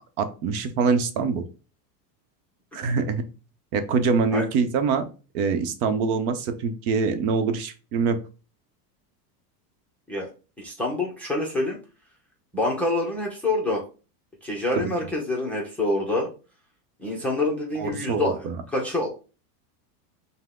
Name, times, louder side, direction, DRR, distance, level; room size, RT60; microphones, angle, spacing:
voice 1, 0.2-1.4 2.7-3.2 3.7-5.1 5.3-8.2 14.7-14.9 17.8-18.6, right 5 dB, 65° right, 8 dB, 0.9 m, -24 dB
voice 2, 10.6-11.8 12.5-13.8 14.4-16.3 17.0-19.1, left 2 dB, 5° left, -2 dB, 0.5 m, -26 dB
5.5 x 2.2 x 3.6 m, 0.34 s
supercardioid pair, 150°, 48 cm